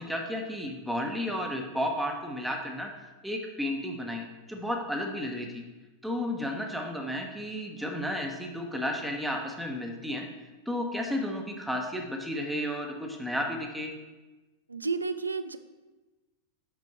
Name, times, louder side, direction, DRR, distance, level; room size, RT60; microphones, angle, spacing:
voice 1, 0.0-5.6 6.0-10.3 10.7-13.9, left 1 dB, 5° right, 2 dB, 1.0 m, -33 dB
voice 2, 14.7-15.6, right 4 dB, 80° right, 12 dB, 0.3 m, -31 dB
5.9 x 5.5 x 4.3 m, 1.1 s
figure-of-eight pair, 90°, 0 cm